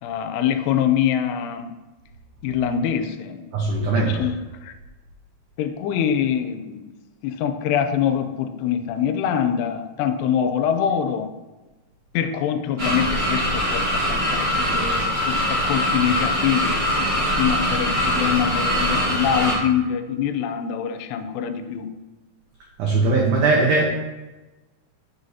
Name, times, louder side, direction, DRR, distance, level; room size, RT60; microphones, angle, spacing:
voice 1, 0.0-1.8 2.4-3.5 4.0-4.4 4.6-4.7 5.6-6.9 7.2-11.3 12.1-21.9, left 8 dB, 90° left, 8 dB, 2.7 m, -24 dB
voice 2, 3.5-4.3 22.8-23.9, right 3 dB, 90° right, -2 dB, 1.7 m, -19 dB
sound 1, 12.8-19.6, equal, 35° right, 0.9 m, -22 dB
8.1 x 5.9 x 2.7 m, 1.1 s
omnidirectional pair, 4.7 m